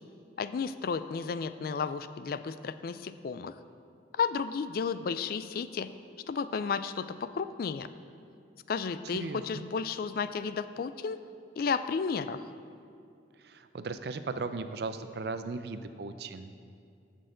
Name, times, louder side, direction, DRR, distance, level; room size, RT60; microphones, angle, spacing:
voice 1, 0.4-3.6 4.1-5.9 6.3-7.9 8.7-11.2 11.6-12.4, left 5 dB, 55° left, 13 dB, 0.3 m, -33 dB
voice 2, 9.1-9.6 13.4-16.5, right 3 dB, 60° right, 10 dB, 0.5 m, -37 dB
14.5 x 6.4 x 3.8 m, 2.4 s
head